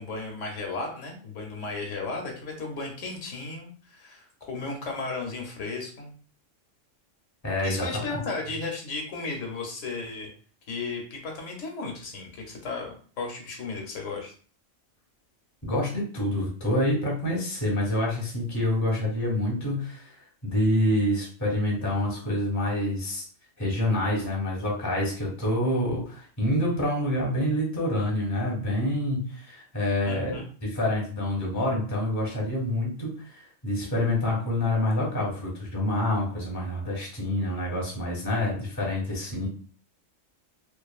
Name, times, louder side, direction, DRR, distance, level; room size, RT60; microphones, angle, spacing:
voice 1, 0.0-6.1 7.6-10.3 10.7-14.3 30.0-30.5, left 3 dB, 75° left, 1 dB, 1.0 m, -35 dB
voice 2, 7.4-8.2 15.6-20.1 20.4-23.2 23.6-39.5, left 1 dB, 15° left, -2 dB, 0.7 m, -27 dB
2.5 x 2.4 x 2.3 m, 0.42 s
omnidirectional pair, 1.3 m